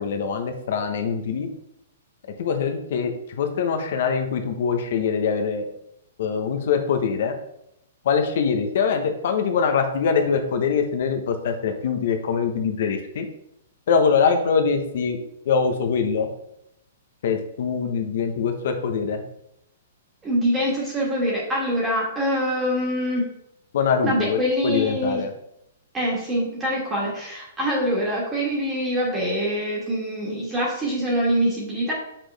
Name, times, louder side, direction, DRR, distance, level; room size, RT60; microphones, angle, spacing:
voice 1, 0.0-1.5 2.4-5.6 6.2-7.3 8.1-13.3 13.9-15.2 15.5-16.3 17.2-19.2 23.7-25.3, left 6 dB, 55° left, 6 dB, 1.1 m, -23 dB
voice 2, 20.2-23.3 24.0-25.2 25.9-31.9, equal, 10° right, -5 dB, 1.7 m, -24 dB
6.4 x 5.9 x 3.4 m, 0.79 s
hypercardioid pair, 165°, 0 cm